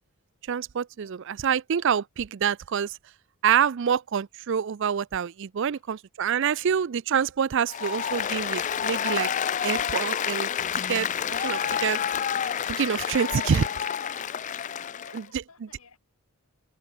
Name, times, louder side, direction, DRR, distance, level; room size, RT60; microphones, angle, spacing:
voice 1, 0.5-3.0 3.4-9.3 9.6-10.5 10.9-12.0 12.7-13.6 15.1-15.2 15.6-15.7, right 7 dB, 55° right, 0.4 m, -26 dB
Applause, 7.7-15.2, left 8 dB, 35° left, 0.3 m, -29 dB
voice 2, 14.7-16.0, left 4 dB, 75° left, 2.4 m, -55 dB
head